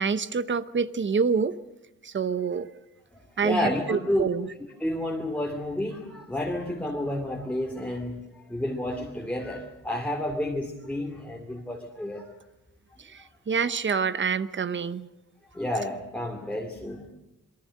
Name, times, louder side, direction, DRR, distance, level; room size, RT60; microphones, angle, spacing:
voice 1, 0.0-1.6 2.0-2.7 3.4-4.5 13.0-15.1, right 5 dB, 35° right, 14 dB, 1.0 m, -27 dB
voice 2, 3.1-4.3 4.8-12.3 15.5-17.1, left 1 dB, 5° left, 1 dB, 2.6 m, -30 dB
27.5 x 23.0 x 6.5 m, 0.91 s
wide cardioid pair, 145°, 33 cm